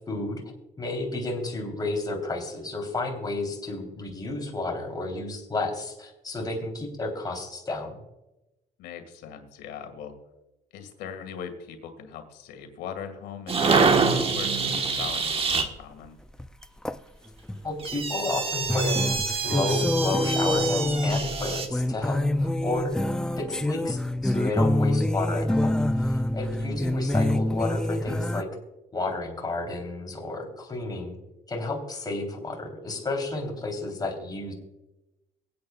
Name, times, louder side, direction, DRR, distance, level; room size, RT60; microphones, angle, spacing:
voice 1, 0.1-0.4 0.8-8.0 17.6-19.1 19.4-22.9 23.4-28.5 28.9-31.2 31.5-34.5, left 2 dB, 25° left, 1 dB, 3.5 m, -31 dB
voice 2, 8.8-10.1 10.7-16.2 26.6-26.8, left 7 dB, 85° left, 6 dB, 1.9 m, -40 dB
sound 1, 13.5-15.7 17.8-21.7, right 4 dB, 35° right, 1.3 m, -26 dB
sound 2, 14.3-14.4 16.4-17.0 17.5-17.6 17.9-18.0 18.7-28.4, left 1 dB, 5° left, 0.3 m, -26 dB
23.0 x 8.7 x 2.4 m, 0.97 s
cardioid pair, 110°, 17 cm